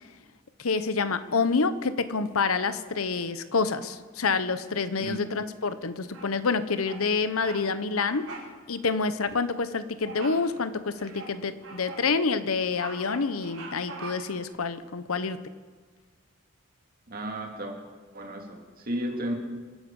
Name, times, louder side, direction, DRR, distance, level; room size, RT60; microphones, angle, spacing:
voice 1, 0.6-8.3 8.7-15.4, left 4 dB, 85° left, 12 dB, 0.9 m, -27 dB
voice 2, 5.0-5.4 17.1-17.8 18.1-19.3, right 1 dB, 45° right, 3 dB, 2.3 m, -33 dB
Bird vocalization bird call bird song, 6.1-6.5 6.8-7.1 7.4-7.6 7.9-8.5 8.8-9.0 10.0-10.5 11.0-12.1 12.5-14.4, right 3 dB, 90° right, 4.4 m, -42 dB
26.0 x 10.0 x 5.4 m, 1.5 s
head